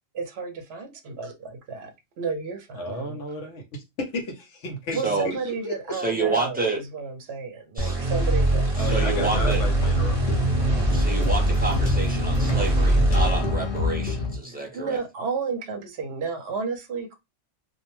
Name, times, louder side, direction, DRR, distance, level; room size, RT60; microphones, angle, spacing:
voice 1, 0.1-3.2 4.9-8.8 14.7-17.2, right 5 dB, 60° right, 0.9 m, -32 dB
voice 2, 2.7-5.9 8.8-10.2, left 1 dB, 70° left, 1.0 m, -33 dB
voice 3, 4.9-5.3 5.9-6.8 7.8-8.0 8.8-9.6 10.9-15.0, right 3 dB, 10° right, 0.6 m, -29 dB
sound 1, 7.8-14.2, right 2 dB, 30° right, 0.9 m, -23 dB
sound 2, 9.1-14.4, left 2 dB, 50° left, 0.7 m, -27 dB
2.5 x 2.1 x 3.0 m
omnidirectional pair, 1.3 m